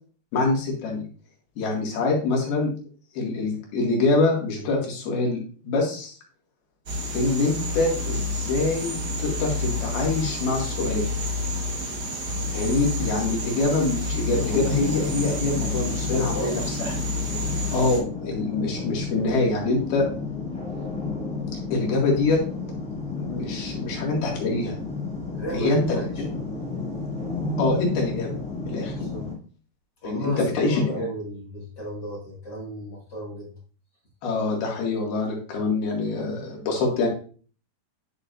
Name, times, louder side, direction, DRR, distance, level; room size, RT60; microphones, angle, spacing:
voice 1, 0.3-1.1 1.6-2.7 3.2-5.4 5.6-6.1 7.1-11.0 12.5-16.9 17.7-20.1 21.7-22.4 23.2-24.8 25.5-26.3 27.6-28.3 28.6-28.9 30.0-31.1 34.2-37.1, left 3 dB, 75° left, -1 dB, 4.1 m, -25 dB
sound 1, 6.9-18.0, left 2 dB, 75° right, 0.9 m, -29 dB
sound 2, 14.3-29.3, left 3 dB, 5° left, 0.9 m, -32 dB
voice 2, 16.1-16.8 17.3-17.6 18.7-18.8 25.3-26.2 29.0-29.3 30.0-33.5, right 1 dB, 35° left, -4 dB, 2.0 m, -36 dB
11.0 x 6.5 x 2.6 m, 0.41 s
omnidirectional pair, 4.5 m